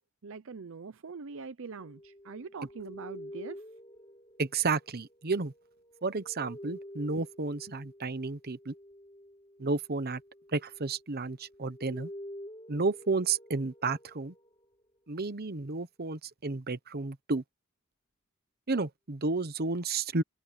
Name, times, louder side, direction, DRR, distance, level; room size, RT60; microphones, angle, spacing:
voice 1, 0.2-3.6, right 4 dB, 65° right, 0.7 m, -43 dB
sound 1, 1.7-11.1 11.4-15.1, equal, 20° left, 6.8 m, -49 dB
voice 2, 4.4-5.5 6.0-8.7 9.6-10.2 10.5-12.1 12.7-14.3 15.1-17.4 18.7-20.2, right 3 dB, 50° right, 1.0 m, -32 dB
head